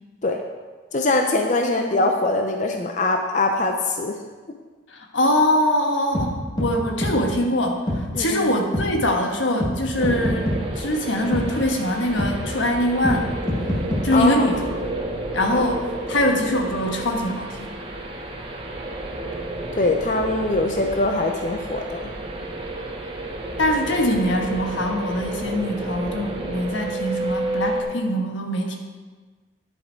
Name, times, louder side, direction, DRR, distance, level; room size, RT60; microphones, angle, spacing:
voice 1, 0.9-4.1 8.1-8.5 14.1-14.5 19.8-22.0, left 2 dB, 40° left, 4 dB, 0.6 m, -22 dB
voice 2, 4.9-13.3 14.0-14.9 15.3-17.7 23.6-28.8, left 1 dB, 85° left, 2 dB, 1.4 m, -23 dB
sound 1, 6.1-6.3 6.6-6.7 7.0-7.1 7.9-8.0 8.7-8.9 9.6-9.7 10.0-10.6 11.3-11.5 12.2-12.3 13.0-13.2 13.5-14.0, left 1 dB, 20° left, 1.5 m, -24 dB
sound 2, 10.0-27.8, right 1 dB, 30° right, 1.0 m, -31 dB
10.0 x 7.7 x 4.6 m, 1.4 s
head